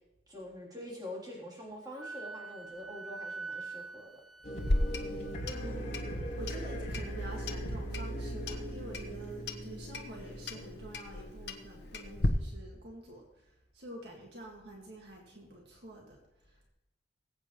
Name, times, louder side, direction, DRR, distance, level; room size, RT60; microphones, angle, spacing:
voice 1, 0.3-4.1 5.1-5.2, left 1 dB, 20° right, -5 dB, 3.4 m, -45 dB
Wind instrument woodwind instrument, 2.0-5.4, right 4 dB, ahead, 0.7 m, -44 dB
sound 1, 4.4-11.4, right 1 dB, 40° left, 4.7 m, -39 dB
Clock, 4.6-12.3, left 1 dB, 70° left, 1.0 m, -37 dB
voice 2, 5.5-16.7, right 1 dB, 65° right, 0 dB, 2.0 m, -48 dB
20.0 x 8.7 x 3.1 m, 0.89 s
head